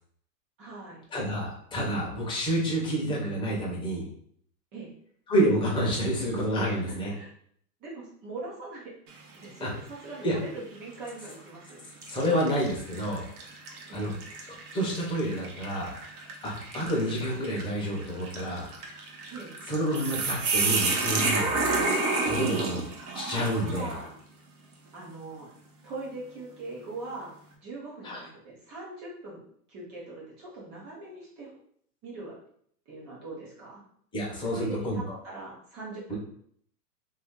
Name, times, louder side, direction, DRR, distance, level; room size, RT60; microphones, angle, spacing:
voice 1, 0.6-1.0 4.7-4.9 6.6-6.8 7.1-7.3 7.8-8.9 9.4-12.0 13.9-14.2 19.3-19.5 23.6-24.2 24.9-25.5 25.8-27.3 27.6-29.4 29.7-31.5 32.0-32.4 32.9-33.8 34.4-36.1, right 2 dB, 15° right, -5 dB, 0.3 m, -41 dB
voice 2, 1.1-4.0 5.3-7.1 9.6-9.7 10.2-10.3 12.1-13.2 13.9-14.1 14.7-15.9 16.4-18.7 19.7-21.8 22.2-22.8 23.1-23.9 28.0-28.2 34.1-35.2 36.1-36.2, equal, 10° left, -3 dB, 0.7 m, -29 dB
sound 1, 9.1-9.6 10.1-10.2 11.2-11.4 12.0-24.0, right 3 dB, 65° right, 0.9 m, -31 dB
2.7 x 2.7 x 3.5 m, 0.64 s
hypercardioid pair, 135°, 49 cm